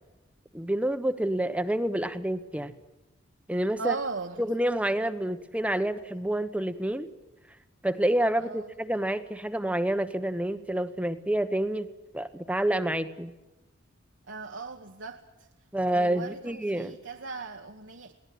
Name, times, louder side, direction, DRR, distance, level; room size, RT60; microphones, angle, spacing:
voice 1, 0.5-2.7 3.5-4.0 4.4-7.1 7.8-11.9 12.1-13.3 15.7-17.0, right 1 dB, 5° right, 11 dB, 1.0 m, -28 dB
voice 2, 3.8-4.4 8.4-8.7 14.3-15.2 15.9-18.1, right 4 dB, 70° right, 4 dB, 1.3 m, -37 dB
22.0 x 18.0 x 9.4 m, 1.0 s
head